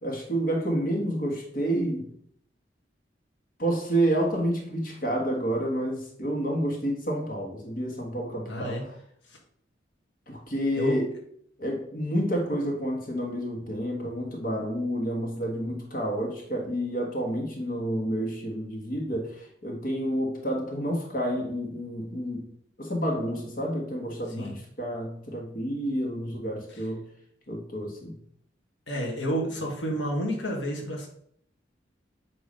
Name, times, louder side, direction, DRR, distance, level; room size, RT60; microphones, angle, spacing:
voice 1, 0.0-2.1 3.6-8.9 10.3-11.1 11.6-22.5 22.8-27.1 27.5-28.1, equal, 50° left, 0 dB, 1.5 m, -29 dB
voice 2, 8.5-8.8 9.3-9.4 10.8-11.0 24.4-24.5 28.9-31.1, equal, 90° left, 0 dB, 1.5 m, -30 dB
8.5 x 3.0 x 5.2 m, 0.65 s
head